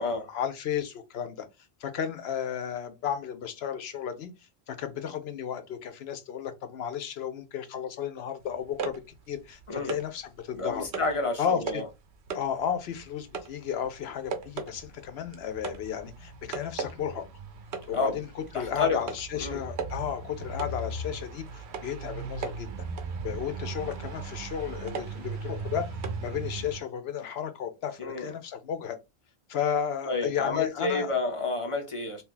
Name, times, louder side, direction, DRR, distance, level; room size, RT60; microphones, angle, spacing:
voice 1, 0.0-1.5 1.8-4.3 4.7-9.0 9.3-10.8 11.4-11.8 12.3-17.2 17.9-22.9 23.2-29.0 29.5-31.1, left 8 dB, 75° left, 0.8 m, -33 dB
sound 1, 8.5-10.2 10.6-11.2 11.6-12.0 12.3-26.8, right 4 dB, 90° right, 0.9 m, -37 dB
voice 2, 10.5-11.8 17.9-18.2 18.5-19.0 19.4-19.6 28.0-28.3 30.0-32.2, left 3 dB, 40° left, 0.6 m, -29 dB
2.8 x 2.3 x 3.7 m
omnidirectional pair, 1.1 m